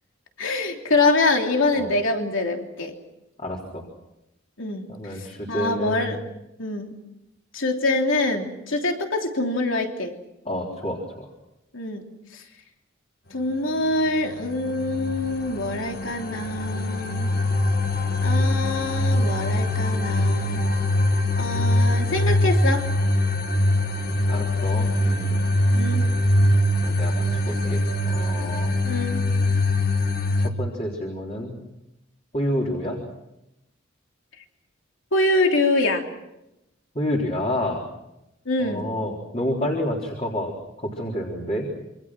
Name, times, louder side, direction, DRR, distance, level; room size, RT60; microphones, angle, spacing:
voice 1, 0.4-2.9 4.6-6.2 6.6-6.9 7.5-10.1 11.7-12.0 12.3-12.4 13.3-17.3 18.2-20.6 21.4-22.9 25.7-26.1 28.8-29.3 35.1-36.0 38.4-38.9, left 2 dB, 75° left, 3 dB, 3.2 m, -25 dB
voice 2, 3.4-3.9 4.9-6.2 10.5-11.3 24.2-25.4 26.8-28.7 30.4-31.6 32.3-33.0 36.9-37.8 38.6-41.7, left 1 dB, 30° left, -1 dB, 3.9 m, -29 dB
sound 1, 14.2-30.5, left 1 dB, 45° left, 1.7 m, -23 dB
27.5 x 25.0 x 6.2 m, 0.88 s
head